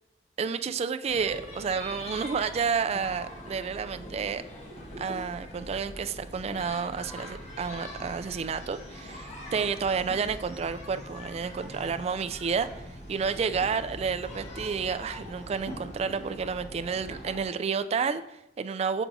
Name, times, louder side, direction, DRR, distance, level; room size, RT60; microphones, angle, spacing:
voice 1, 0.4-4.4 5.0-19.0, right 6 dB, 35° right, 10 dB, 0.3 m, -30 dB
sound 1, 1.1-17.4, equal, 40° left, 1.3 m, -42 dB
6.8 x 6.0 x 2.6 m, 0.88 s
head